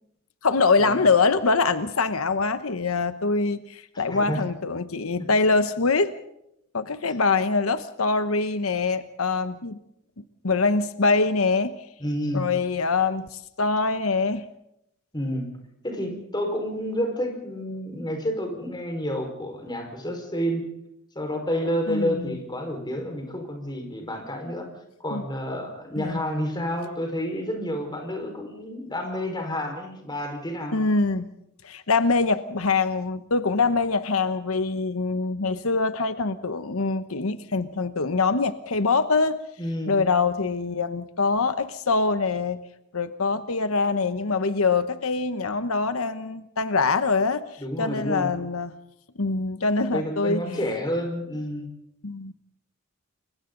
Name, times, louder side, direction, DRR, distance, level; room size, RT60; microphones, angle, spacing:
voice 1, 0.4-6.1 6.7-9.8 10.4-11.8 12.3-14.4 21.9-22.4 25.1-25.2 26.0-26.2 30.7-31.3 31.6-39.4 39.9-42.6 42.9-47.4 47.8-48.7 49.2-50.4 52.0-52.3, left 4 dB, 90° left, 11 dB, 1.0 m, -24 dB
voice 2, 12.0-12.5 15.1-15.5 15.8-20.6 21.1-24.7 25.0-30.8 39.6-40.0 47.6-48.3 49.9-51.7, equal, 20° left, 4 dB, 4.8 m, -29 dB
29.0 x 23.0 x 3.9 m, 0.80 s
head